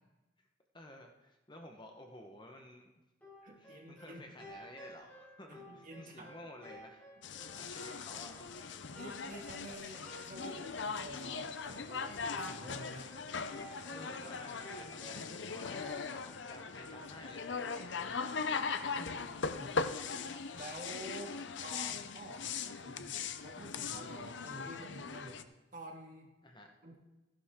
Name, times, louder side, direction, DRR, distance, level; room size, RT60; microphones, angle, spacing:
voice 1, 0.7-2.9 3.6-7.0 7.5-8.7 13.9-18.3 18.9-19.5 26.4-26.7, left 1 dB, 25° left, 3 dB, 1.1 m, -53 dB
sound 1, 3.2-20.6, equal, 10° left, 4.2 m, -55 dB
voice 2, 3.4-4.2 5.7-6.4 7.6-7.7 8.9-13.2 19.4-19.7 20.5-23.2 23.4-25.4 25.7-26.3 26.8-27.0, right 1 dB, 45° right, 0 dB, 2.4 m, -49 dB
sound 2, 7.2-25.4, left 5 dB, 70° left, 0.7 m, -40 dB
14.5 x 11.5 x 3.7 m, 1.1 s
head